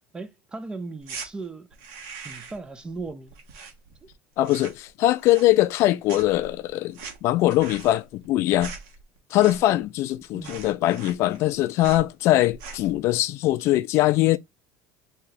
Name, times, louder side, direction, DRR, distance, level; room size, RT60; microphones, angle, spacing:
voice 1, 0.1-1.7 2.2-3.4 10.3-10.7, right 3 dB, 15° right, 0.5 m, -37 dB
sound 1, 1.0-1.3 1.7-2.7 2.9-4.1 4.4-4.9 5.2-5.8 6.1-9.8 10.1-10.2 10.4-11.5 11.8-12.1 12.5-12.9, right 5 dB, 70° right, 1.3 m, -41 dB
voice 2, 4.4-8.7 9.3-14.4, left 15 dB, 50° left, 0.3 m, -22 dB
3.5 x 2.8 x 3.2 m
supercardioid pair, 135°, 6 cm